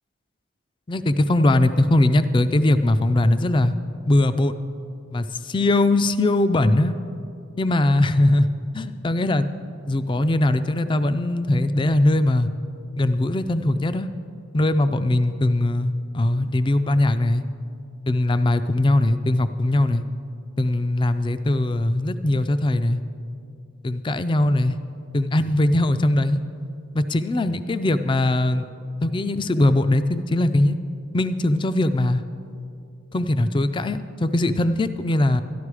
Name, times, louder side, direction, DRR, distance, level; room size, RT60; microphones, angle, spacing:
voice 1, 0.9-3.7 4.1-4.5 5.1-6.9 7.6-8.5 8.7-9.5 9.9-12.5 13.0-14.1 14.5-17.4 18.1-20.0 20.6-23.0 23.8-24.8 25.1-26.4 27.0-28.7 29.0-30.8 31.1-32.2 33.1-35.4, left 1 dB, 20° left, 11 dB, 0.3 m, -20 dB
13.0 x 11.0 x 4.8 m, 2.5 s
head